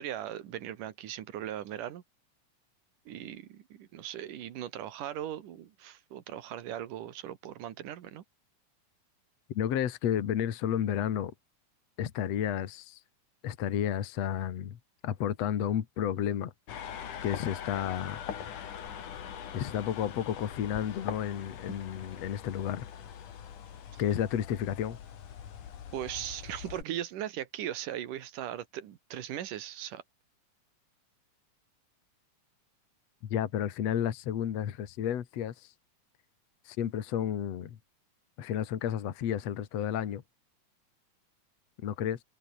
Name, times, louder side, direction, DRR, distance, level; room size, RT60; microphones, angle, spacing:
voice 1, 0.0-2.0 3.1-8.2 23.9-24.0 25.9-30.0, right 11 dB, 85° right, 3.2 m, -39 dB
voice 2, 9.5-11.3 12.0-13.0 13.4-14.8 15.0-16.5 17.2-18.2 19.5-22.9 24.0-25.0 33.3-35.7 36.7-37.8 38.4-40.2 41.8-42.2, left 9 dB, 60° left, 2.6 m, -31 dB
sound 1, 16.7-26.8, left 8 dB, 75° left, 3.8 m, -42 dB
omnidirectional pair, 3.6 m